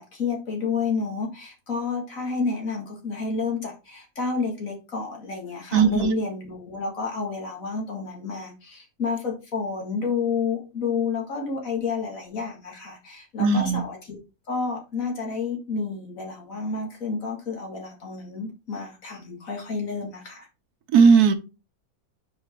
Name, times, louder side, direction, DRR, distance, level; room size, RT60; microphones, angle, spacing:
voice 1, 0.0-14.2 14.5-20.5, left 4 dB, 60° left, 2.4 m, -30 dB
voice 2, 5.7-6.1 13.4-13.8 20.9-21.3, right 5 dB, 85° right, 1.4 m, -17 dB
5.0 x 4.8 x 4.4 m
omnidirectional pair, 1.6 m